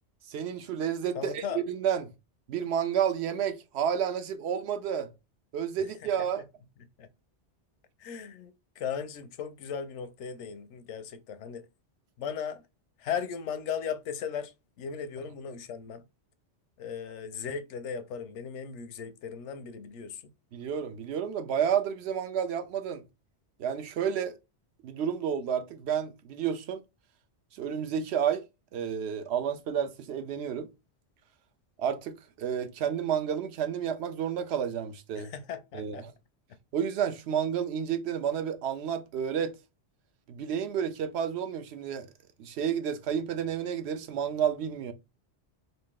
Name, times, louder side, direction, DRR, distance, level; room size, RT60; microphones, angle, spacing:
voice 1, 0.3-2.1 2.5-5.1 5.5-6.4 20.5-23.0 23.6-24.4 24.8-26.8 27.5-28.4 28.7-30.7 31.8-35.3 35.7-36.1 36.7-39.5 40.3-42.1 42.4-44.9, right 8 dB, 70° right, 0.8 m, -30 dB
voice 2, 1.1-1.6 6.0-6.1 7.0-7.1 8.0-11.6 12.2-12.6 13.0-16.0 16.8-20.2 35.2-36.0, left 7 dB, 85° left, 0.9 m, -37 dB
3.0 x 2.6 x 3.6 m
omnidirectional pair, 1.2 m